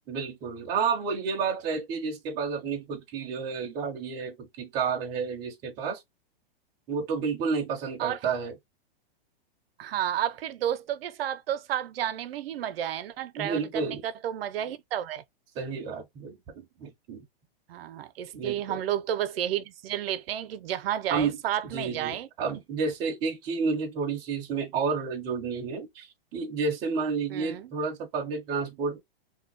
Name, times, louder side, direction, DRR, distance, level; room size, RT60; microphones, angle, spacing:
voice 1, 0.1-6.0 6.9-8.5 13.3-14.0 15.6-17.3 18.3-18.8 21.1-21.4 21.7-29.0, right 5 dB, 15° right, 0.4 m, -31 dB
voice 2, 9.8-15.2 17.7-22.3 27.3-27.7, right 11 dB, 80° right, 0.5 m, -31 dB
2.7 x 2.1 x 3.7 m
supercardioid pair, 165°, 30 cm